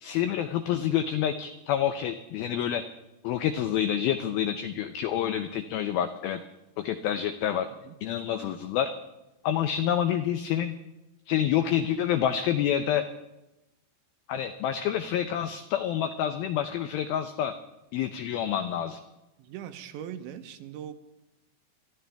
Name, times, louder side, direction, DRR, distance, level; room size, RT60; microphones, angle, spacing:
voice 1, 0.0-2.8 3.2-6.4 6.8-7.7 8.0-8.9 9.4-10.7 11.3-13.0 14.3-17.5 17.9-19.0, left 10 dB, 85° left, 9 dB, 2.1 m, -28 dB
voice 2, 19.4-20.9, right 10 dB, 90° right, 8 dB, 3.2 m, -40 dB
24.0 x 13.5 x 3.5 m, 0.96 s
omnidirectional pair, 5.2 m